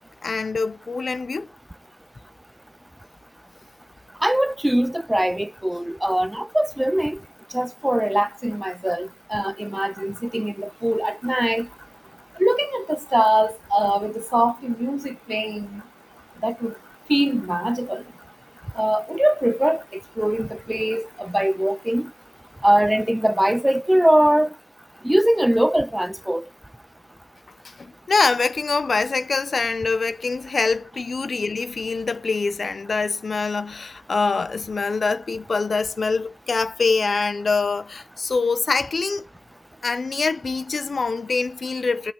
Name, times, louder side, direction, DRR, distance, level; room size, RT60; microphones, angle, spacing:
voice 1, 0.2-1.5 27.8-39.2 39.8-42.1, left 4 dB, 75° left, 0.5 m, -24 dB
voice 2, 4.2-7.2 7.5-11.7 12.4-15.8 16.4-16.7 17.1-18.0 18.8-19.8 20.2-22.1 22.6-24.5 25.0-26.4, right 1 dB, 10° right, 0.7 m, -22 dB
13.5 x 5.8 x 5.3 m
cardioid pair, 40°, 0 cm